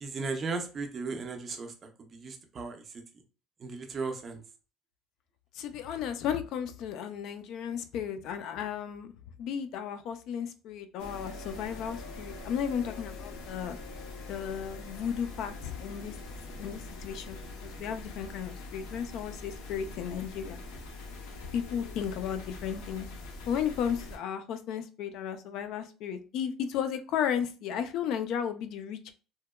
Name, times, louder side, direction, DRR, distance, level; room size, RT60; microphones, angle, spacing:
voice 1, 0.0-2.9 3.6-4.4, right 4 dB, 25° right, 4 dB, 0.4 m, -36 dB
voice 2, 5.5-9.1 9.4-13.8 14.3-16.2 16.6-20.6 21.5-23.1 23.5-29.1, left 8 dB, 50° left, 10 dB, 0.3 m, -34 dB
sound 1, 11.0-24.2, left 3 dB, 90° left, 0.6 m, -43 dB
2.7 x 2.1 x 2.2 m, 0.35 s
cardioid pair, 175°, 0 cm